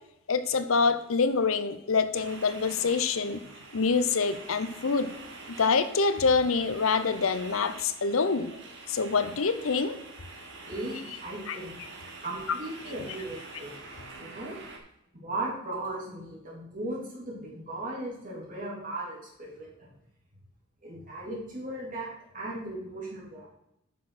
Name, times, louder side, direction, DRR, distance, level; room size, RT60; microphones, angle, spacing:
voice 1, 0.3-3.4 3.7-5.1 5.5-8.5 8.9-10.0 11.5-11.6, left 4 dB, 70° left, 11 dB, 0.7 m, -26 dB
sound 1, 2.1-14.8, right 3 dB, 60° right, 1.6 m, -46 dB
voice 2, 10.7-11.8 12.2-13.8 14.1-14.6 15.1-19.9 20.8-22.1 22.3-23.5, right 2 dB, 40° right, -4 dB, 3.2 m, -37 dB
9.2 x 6.4 x 4.2 m, 0.81 s
head